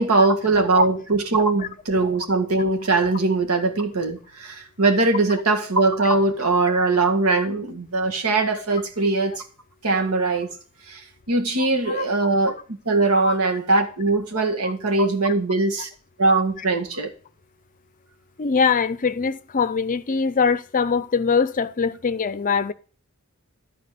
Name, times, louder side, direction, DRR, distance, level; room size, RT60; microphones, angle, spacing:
voice 1, 0.0-9.4 9.8-10.5 10.9-11.0 11.3-12.5 12.9-15.9 16.2-17.1, right 3 dB, 85° right, 1.7 m, -21 dB
voice 2, 14.3-14.7 18.4-22.7, left 5 dB, 35° left, 0.5 m, -23 dB
12.0 x 4.3 x 6.7 m
head